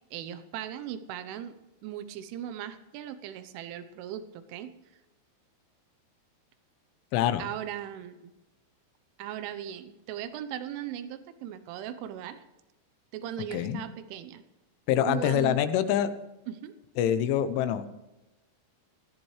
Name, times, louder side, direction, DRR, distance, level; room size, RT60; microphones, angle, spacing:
voice 1, 0.1-1.6 1.8-4.7 7.4-8.3 9.2-12.4 13.1-14.4 15.0-15.6 16.5-16.7, right 10 dB, 90° right, 11 dB, 3.4 m, -38 dB
voice 2, 7.1-7.5 13.5-13.8 14.9-16.1 17.0-17.9, left 10 dB, 85° left, 12 dB, 3.3 m, -25 dB
19.5 x 14.5 x 3.2 m, 1.0 s
omnidirectional pair, 5.5 m